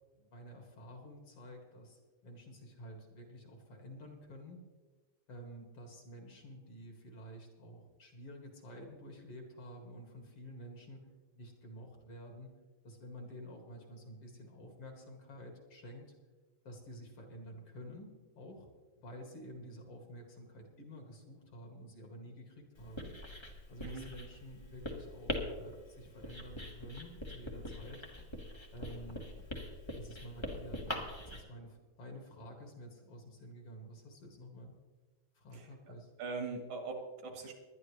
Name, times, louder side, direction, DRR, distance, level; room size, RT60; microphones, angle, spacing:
voice 1, 0.2-4.6 5.3-12.6 12.8-16.1 16.6-18.7 19.0-23.1 23.7-28.0 28.7-29.2 29.9-34.8 35.3-36.1, equal, 50° left, 2 dB, 2.8 m, -50 dB
Writing, 22.8-31.4, left 1 dB, 20° left, 0.7 m, -43 dB
voice 2, 35.5-37.5, right 4 dB, 75° right, 3 dB, 3.0 m, -42 dB
20.0 x 11.5 x 3.3 m, 1.3 s
omnidirectional pair, 3.4 m